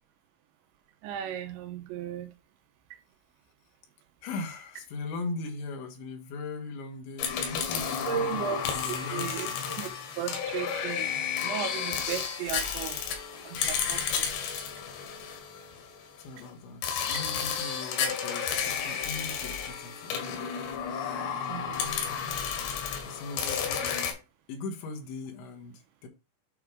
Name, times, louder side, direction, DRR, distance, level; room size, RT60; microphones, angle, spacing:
voice 1, 1.0-2.3 8.1-9.9 10.2-13.0 13.4-14.3 21.5-22.4, right 8 dB, 90° right, 3.2 m, -36 dB
voice 2, 4.2-8.3 8.7-9.8 16.2-20.4 20.9-21.6 23.0-24.1 24.5-25.7 26.0-26.1, left 3 dB, 90° left, 3.6 m, -39 dB
sound 1, 7.2-16.0 16.8-24.1, left 7 dB, 75° left, 3.5 m, -32 dB
8.8 x 3.7 x 4.8 m
omnidirectional pair, 5.1 m